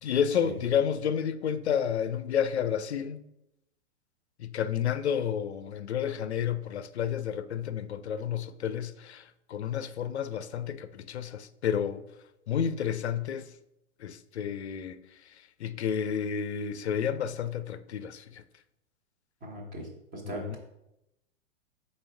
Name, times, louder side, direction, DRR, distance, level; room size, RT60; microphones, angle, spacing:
voice 1, 0.0-3.2 4.4-12.0 12.5-13.5 14.0-15.0 15.6-18.4 20.2-20.6, left 8 dB, 60° left, 0.5 m, -30 dB
voice 2, 19.4-20.6, right 1 dB, 20° right, 1.4 m, -39 dB
5.2 x 4.2 x 4.5 m
figure-of-eight pair, 105°, 37 cm